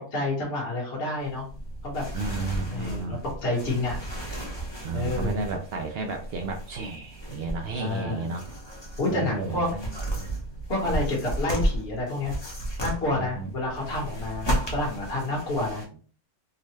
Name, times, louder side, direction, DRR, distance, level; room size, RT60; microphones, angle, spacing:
voice 1, 0.1-1.4 1.8-2.0 2.7-4.0 4.9-5.4 7.8-8.3 9.0-9.7 10.7-12.4 12.8-15.8, left 2 dB, 50° left, -3 dB, 1.3 m, -29 dB
sound 1, 1.2-15.8, right 1 dB, 25° left, 0.6 m, -34 dB
voice 2, 2.1-3.2 4.8-8.4 9.0-10.3 13.1-13.5, right 4 dB, 65° right, 4 dB, 0.6 m, -33 dB
3.8 x 2.1 x 3.1 m, 0.43 s
omnidirectional pair, 1.5 m